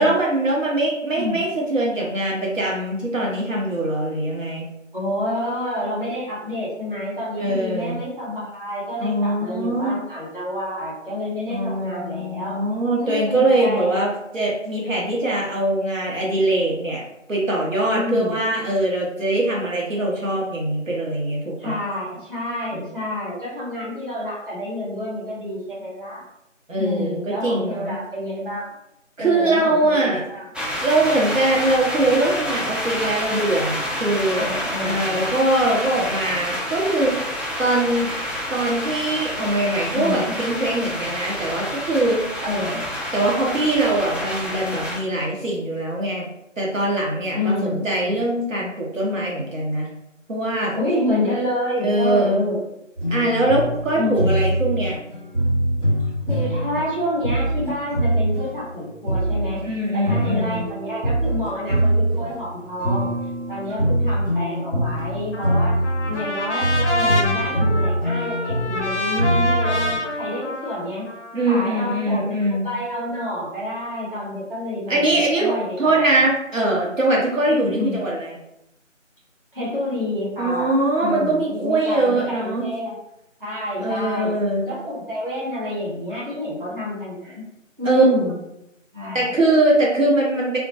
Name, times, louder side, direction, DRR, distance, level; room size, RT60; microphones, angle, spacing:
voice 1, 0.0-4.6 7.4-8.0 9.0-9.9 11.5-17.0 17.3-21.8 26.7-28.0 29.2-30.2 30.8-34.5 34.8-37.1 37.6-38.1 38.5-42.2 43.1-46.3 46.6-49.9 50.3-50.7 51.8-52.4 53.1-55.0 59.6-60.7 71.3-72.7 74.9-78.3 80.4-82.7 83.8-84.6 87.8-88.0 89.1-90.6, right 2 dB, 80° right, -4 dB, 0.9 m, -22 dB
voice 2, 1.1-1.5 4.9-12.6 13.0-13.9 17.9-18.4 21.6-26.2 26.8-28.7 29.2-30.5 34.3-35.3 39.9-40.3 42.4-42.9 47.3-48.2 50.7-52.6 53.0-53.3 53.9-54.4 56.3-59.6 59.9-63.1 63.5-65.8 66.1-71.1 71.5-76.1 77.5-78.0 79.5-82.9 83.4-84.3 84.7-87.4 87.8-88.4 88.9-89.3, left 1 dB, 45° right, -8 dB, 0.8 m, -28 dB
sound 1, 30.5-45.0, equal, 5° right, 0.3 m, -28 dB
sound 2, 53.0-59.7 60.0-70.0, right 1 dB, 65° right, 1.2 m, -23 dB
Trumpet, 65.3-71.6, left 1 dB, 65° left, 0.5 m, -27 dB
2.1 x 2.1 x 2.7 m, 0.84 s
figure-of-eight pair, 175°, 39 cm